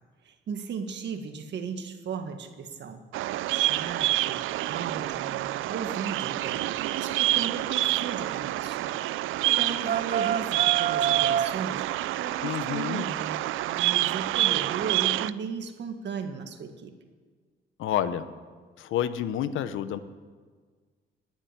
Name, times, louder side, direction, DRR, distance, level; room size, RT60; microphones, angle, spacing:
voice 1, 0.2-3.0 3.4-13.4 13.6-16.9, right 6 dB, 65° right, 6 dB, 1.8 m, -36 dB
Bird vocalization bird call bird song, 3.1-15.3, right 16 dB, 85° right, 0.5 m, -28 dB
sound 1, 9.4-11.6, right 9 dB, 45° right, 0.6 m, -28 dB
voice 2, 12.4-13.0 17.8-18.3 18.8-20.0, left 10 dB, 85° left, 12 dB, 1.0 m, -29 dB
18.5 x 7.5 x 10.0 m, 1.5 s
cardioid pair, 90°, 20 cm